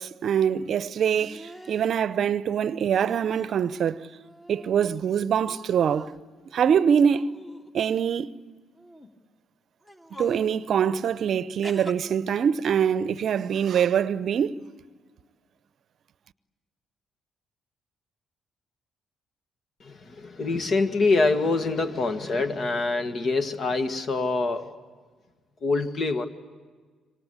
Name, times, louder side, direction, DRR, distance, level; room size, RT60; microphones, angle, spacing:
voice 1, 0.0-4.1 4.5-6.1 6.5-7.3 7.7-8.3 10.2-14.6, right 8 dB, 60° right, 0.7 m, -24 dB
sound 1, 1.2-1.9 2.9-3.6 4.0-5.1 5.5-6.2 6.9-8.0 8.8-9.1 9.8-10.5 11.6-11.9, equal, 20° left, 2.6 m, -45 dB
voice 2, 19.8-24.7 25.6-26.3, left 3 dB, 50° left, 1.9 m, -25 dB
27.0 x 25.0 x 8.4 m
hypercardioid pair, 50°, 0 cm